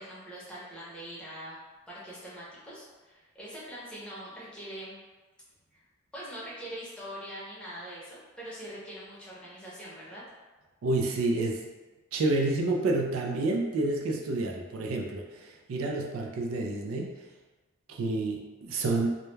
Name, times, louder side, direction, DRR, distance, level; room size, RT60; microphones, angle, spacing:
voice 1, 0.0-1.6 1.9-5.0 5.7-5.8 6.1-10.2, equal, 5° left, -8 dB, 0.7 m, -43 dB
voice 2, 10.8-11.6 12.1-17.1 17.9-19.1, right 2 dB, 90° right, 0 dB, 0.4 m, -29 dB
2.2 x 2.1 x 3.1 m, 1.3 s
head